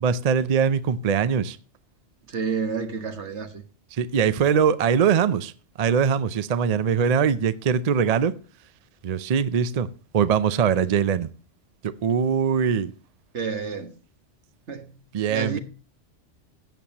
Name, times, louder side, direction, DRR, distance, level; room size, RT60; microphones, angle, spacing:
voice 1, 0.0-1.6 3.9-5.5 5.8-8.3 9.0-9.9 10.1-11.3 11.8-12.9 15.1-15.6, right 7 dB, 50° right, 0.5 m, -22 dB
voice 2, 2.3-3.6 13.3-13.9 14.7-15.0 15.3-15.6, right 5 dB, 70° right, 1.6 m, -29 dB
16.5 x 7.1 x 2.9 m
omnidirectional pair, 1.2 m